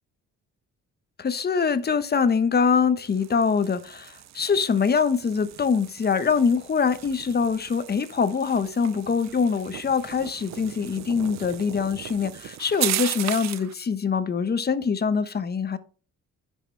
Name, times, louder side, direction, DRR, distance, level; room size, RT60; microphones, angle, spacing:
voice 1, 1.2-15.8, left 5 dB, 35° left, 1.0 m, -24 dB
sound 1, 3.0-13.7, right 13 dB, 65° right, 0.6 m, -36 dB
9.9 x 6.4 x 3.3 m
cardioid pair, 90°, 30 cm